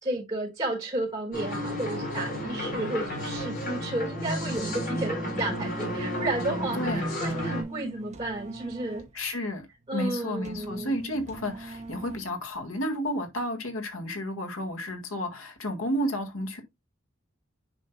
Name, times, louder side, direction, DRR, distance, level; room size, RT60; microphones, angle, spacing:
voice 1, 0.0-9.4 9.9-10.9, right 1 dB, 20° right, 4.4 m, -32 dB
sound 1, 1.3-7.6, equal, 45° left, 4.2 m, -32 dB
sound 2, 4.5-12.6, right 2 dB, 35° right, 1.2 m, -42 dB
voice 2, 6.8-7.1 9.1-9.7 9.9-16.6, equal, 85° left, 1.9 m, -31 dB
9.9 x 5.6 x 2.2 m
head